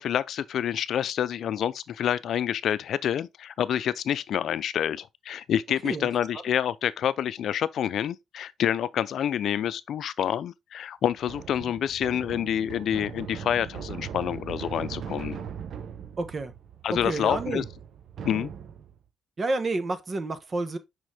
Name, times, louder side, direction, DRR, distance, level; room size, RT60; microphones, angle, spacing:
voice 1, 0.0-15.4 16.8-17.6 18.2-18.5, left 9 dB, 65° left, 0.5 m, -28 dB
sound 1, 11.2-19.0, right 8 dB, 65° right, 0.9 m, -39 dB
voice 2, 16.2-16.5 16.9-17.7 19.4-20.8, right 2 dB, 40° right, 1.3 m, -29 dB
6.3 x 5.2 x 3.5 m
cardioid pair, 90°, 0 cm